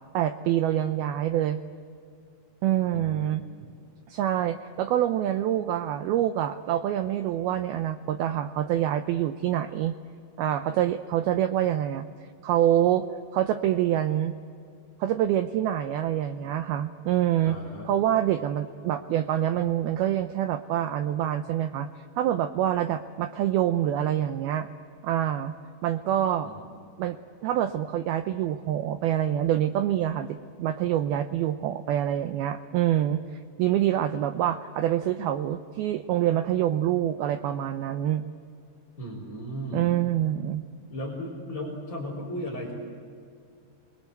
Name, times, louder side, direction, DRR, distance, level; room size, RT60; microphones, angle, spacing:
voice 1, 0.1-1.6 2.6-3.4 4.1-10.0 10.4-12.1 12.4-14.3 15.0-17.6 17.9-21.9 22.2-24.7 25.0-25.6 25.8-26.5 27.0-27.2 27.4-38.2 39.7-40.6, right 11 dB, 80° right, 9 dB, 2.2 m, -26 dB
voice 2, 2.9-3.2 17.4-17.9 26.4-26.7 39.0-40.0 40.9-42.7, equal, 15° left, -4 dB, 4.7 m, -36 dB
28.0 x 24.0 x 8.0 m, 2.4 s
omnidirectional pair, 5.2 m